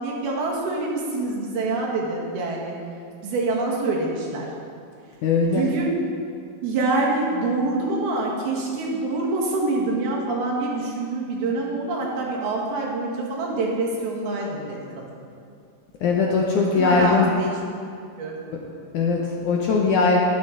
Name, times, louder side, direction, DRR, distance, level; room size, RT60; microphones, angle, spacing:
voice 1, 0.0-2.7 3.2-4.5 5.5-6.0 6.6-15.2 16.8-17.6 18.2-18.4, right 3 dB, 80° right, -3 dB, 3.5 m, -26 dB
voice 2, 5.2-5.7 16.0-17.3 18.5-18.6 18.9-20.2, left 4 dB, 75° left, -1 dB, 1.9 m, -20 dB
12.0 x 11.0 x 3.9 m, 2.3 s
omnidirectional pair, 4.4 m